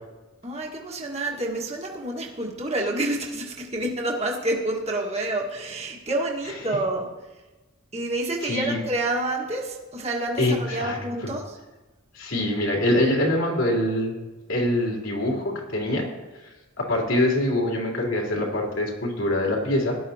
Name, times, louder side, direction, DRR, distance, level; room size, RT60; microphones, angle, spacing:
voice 1, 0.4-7.1 7.9-11.6, right 2 dB, 30° right, -1 dB, 1.6 m, -28 dB
voice 2, 8.4-8.8 10.4-11.0 11.2-11.3 12.1-14.1 14.5-16.1 16.8-19.9, left 1 dB, 70° left, -1 dB, 3.3 m, -24 dB
17.5 x 12.0 x 2.9 m, 1.2 s
head